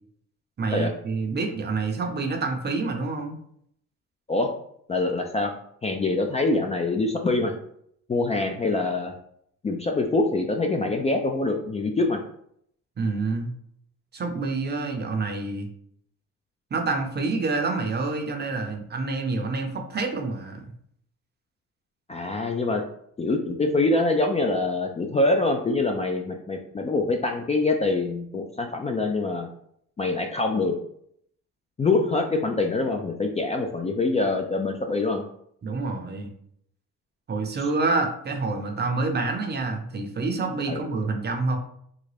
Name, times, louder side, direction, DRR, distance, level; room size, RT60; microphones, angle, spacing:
voice 1, 0.6-3.3 13.0-13.5 14.1-15.7 16.7-20.6 35.6-36.3 37.3-41.6, right 3 dB, 35° right, 4 dB, 0.6 m, -27 dB
voice 2, 4.9-5.5 5.8-7.5 8.1-9.1 9.6-12.2 22.1-22.8 23.2-29.5 30.0-30.8 31.8-35.2 40.7-40.8, left 2 dB, 20° left, 3 dB, 0.4 m, -24 dB
3.7 x 2.1 x 3.3 m, 0.68 s
cardioid pair, 90°, 30 cm